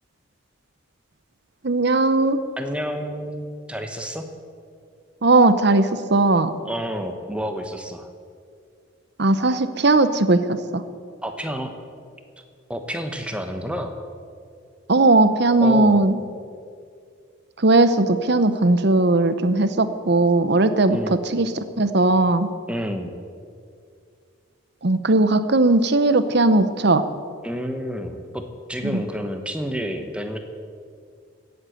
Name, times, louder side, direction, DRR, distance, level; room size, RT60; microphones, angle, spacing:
voice 1, 1.6-2.4 5.2-6.5 9.2-10.8 14.9-16.2 17.6-21.0 21.3-22.5 24.8-27.0 28.8-29.0, right 2 dB, 55° right, 11 dB, 0.8 m, -18 dB
voice 2, 2.6-4.2 6.6-8.1 11.2-11.7 12.7-14.0 15.6-16.0 20.9-21.2 22.7-23.1 27.4-28.4 28.7-30.4, equal, 5° right, 6 dB, 1.0 m, -29 dB
16.5 x 8.0 x 7.9 m, 2.2 s
head